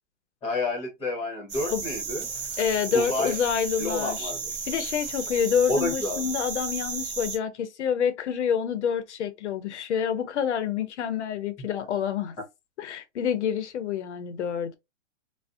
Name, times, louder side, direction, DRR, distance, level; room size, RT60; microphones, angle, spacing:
voice 1, 0.4-2.3 2.9-3.3 3.8-4.5 5.7-6.3, left 2 dB, 15° left, 0.9 m, -29 dB
sound 1, 1.5-7.4, right 4 dB, 25° right, 0.6 m, -34 dB
voice 2, 2.6-4.3 4.7-12.4 12.8-14.8, left 8 dB, 65° left, 0.6 m, -27 dB
2.5 x 2.0 x 2.4 m
hypercardioid pair, 145°, 37 cm